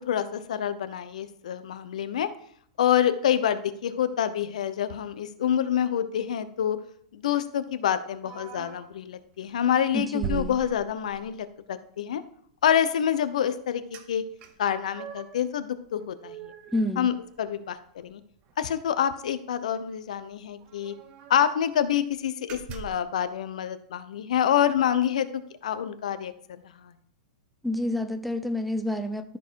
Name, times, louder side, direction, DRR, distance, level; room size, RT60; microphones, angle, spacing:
voice 1, 0.1-2.3 2.8-6.8 7.1-12.2 12.6-13.8 14.1-14.2 14.6-16.3 17.0-18.2 18.6-20.9 21.3-25.3 25.6-26.9, left 9 dB, 85° left, 12 dB, 0.8 m, -27 dB
sound 1, 8.2-8.9 9.4-9.6 10.2-11.3 13.9-14.1 14.4-15.4 15.9-17.7 18.0-18.1 18.4-18.6 19.7-19.8 20.1-20.2 20.6-21.5 21.9-22.1 22.5-23.1, right 7 dB, 30° right, 1.0 m, -40 dB
voice 2, 9.9-10.6 16.7-17.1 27.6-29.4, left 1 dB, ahead, 7 dB, 0.5 m, -29 dB
13.0 x 4.6 x 4.6 m, 0.65 s
supercardioid pair, 150°, 4 cm